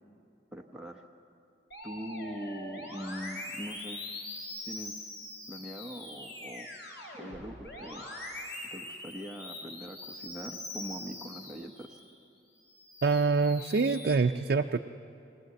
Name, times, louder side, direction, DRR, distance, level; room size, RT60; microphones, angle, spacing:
voice 1, 0.5-1.0 1.8-4.0 4.7-5.0 5.5-6.7 7.1-8.0 8.7-12.0, equal, 5° right, 0 dB, 0.9 m, -42 dB
Musical instrument, 1.7-12.1 12.6-14.1, left 1 dB, 65° left, 4.9 m, -43 dB
voice 2, 13.0-14.8, right 4 dB, 65° right, 4 dB, 0.5 m, -25 dB
22.0 x 19.0 x 7.8 m, 2.5 s
head